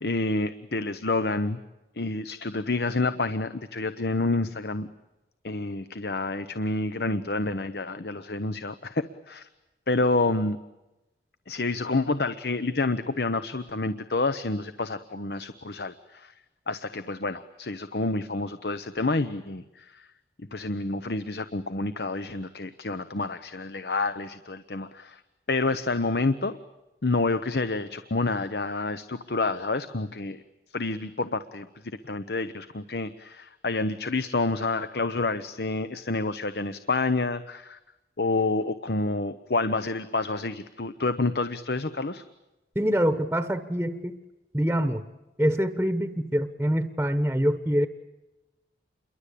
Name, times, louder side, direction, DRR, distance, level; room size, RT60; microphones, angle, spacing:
voice 1, 0.0-1.6 2.0-4.9 5.4-9.5 9.9-10.6 11.5-16.3 16.7-20.1 20.5-25.2 25.5-26.6 27.0-30.4 30.7-37.8 38.2-42.2, left 3 dB, 65° left, 12 dB, 1.0 m, -28 dB
voice 2, 42.7-44.2 44.5-45.0 45.4-47.9, equal, 10° right, 10 dB, 1.1 m, -25 dB
28.5 x 23.0 x 8.5 m, 1.0 s
head